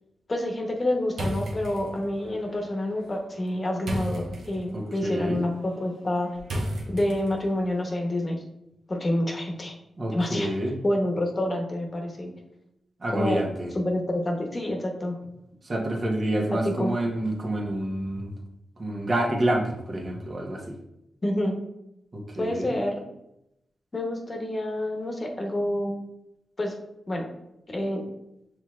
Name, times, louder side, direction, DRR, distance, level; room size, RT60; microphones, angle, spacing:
voice 1, 0.3-6.3 6.9-8.4 8.9-9.7 10.1-10.5 10.8-12.3 13.1-13.4 13.7-15.2 16.5-17.0 21.2-21.6 22.4-23.0 23.9-26.0 26.6-26.7 27.1-27.3 27.7-28.0, left 1 dB, 40° left, 2 dB, 1.0 m, -28 dB
sound 1, 1.1-7.6, equal, 75° right, 0.9 m, -36 dB
voice 2, 4.7-5.4 10.0-10.8 13.0-13.7 15.6-18.3 18.8-20.7 22.1-22.7, right 1 dB, 50° right, 0 dB, 1.2 m, -28 dB
5.3 x 3.2 x 2.4 m, 0.85 s
supercardioid pair, 40°, 0 cm